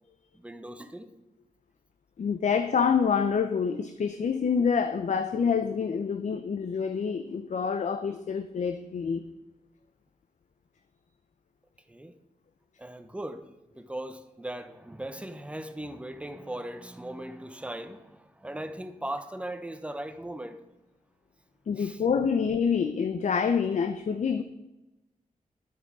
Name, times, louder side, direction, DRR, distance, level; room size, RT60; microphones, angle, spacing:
voice 1, 0.3-1.1 11.9-12.1 12.8-20.7 21.8-22.0, right 1 dB, 10° right, 9 dB, 0.8 m, -39 dB
voice 2, 2.2-9.2 21.7-24.4, left 6 dB, 65° left, 9 dB, 0.6 m, -27 dB
10.5 x 9.2 x 4.8 m, 0.97 s
wide cardioid pair, 125°, 13 cm